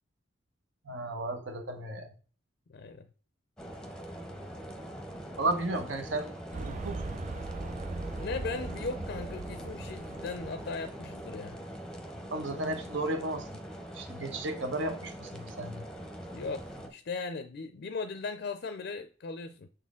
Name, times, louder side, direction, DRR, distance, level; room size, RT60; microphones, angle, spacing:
voice 1, 0.8-2.1 5.4-6.3 6.6-7.1 12.3-13.5 13.9-15.9, right 2 dB, 75° right, 0.9 m, -34 dB
voice 2, 2.7-3.1 8.2-11.6 16.3-19.7, left 4 dB, 60° left, 0.4 m, -38 dB
sound 1, 3.6-16.9, equal, 5° left, 0.7 m, -43 dB
sound 2, 6.5-11.3, right 3 dB, 40° right, 0.4 m, -40 dB
6.6 x 4.2 x 3.6 m
head